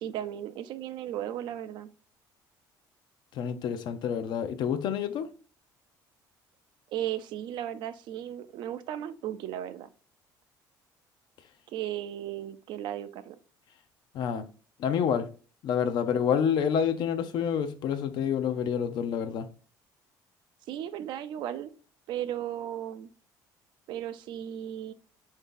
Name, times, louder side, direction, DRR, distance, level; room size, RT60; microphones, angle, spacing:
voice 1, 0.0-1.9 6.9-9.9 11.7-13.4 20.7-21.7 22.1-23.1 23.9-24.9, right 11 dB, 70° right, 0.4 m, -35 dB
voice 2, 3.3-5.3 14.1-14.4 14.8-15.3 15.6-19.5, left 8 dB, 65° left, 0.5 m, -28 dB
3.5 x 2.7 x 3.7 m
cardioid pair, 110°, 8 cm